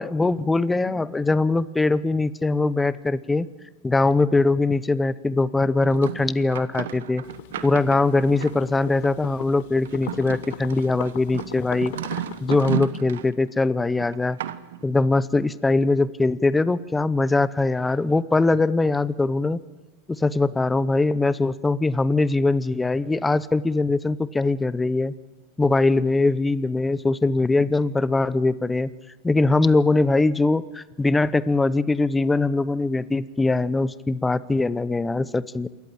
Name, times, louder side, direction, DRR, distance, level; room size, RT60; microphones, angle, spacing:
voice 1, 0.0-3.5 3.8-7.2 7.6-11.9 12.4-14.4 14.8-19.6 20.1-25.1 25.6-28.9 29.2-35.7, left 3 dB, 10° left, 17 dB, 0.8 m, -22 dB
sound 1, 5.8-8.9 9.8-13.4 14.0-14.8, right 10 dB, 75° right, 1.2 m, -33 dB
sound 2, 7.2-12.7, left 14 dB, 65° left, 0.9 m, -39 dB
27.5 x 14.0 x 8.9 m, 1.2 s
hypercardioid pair, 105°, 0 cm